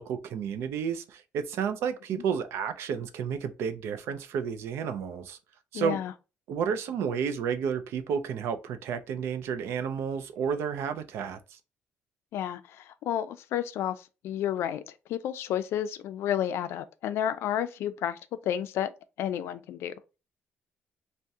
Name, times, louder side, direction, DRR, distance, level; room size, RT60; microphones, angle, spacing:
voice 1, 0.0-5.4 5.7-6.0 6.5-11.6, right 7 dB, 80° right, 0.4 m, -31 dB
voice 2, 5.7-6.1 12.3-18.9 19.2-19.9, left 10 dB, 80° left, 0.4 m, -31 dB
2.7 x 2.1 x 3.4 m
cardioid pair, 125°, 4 cm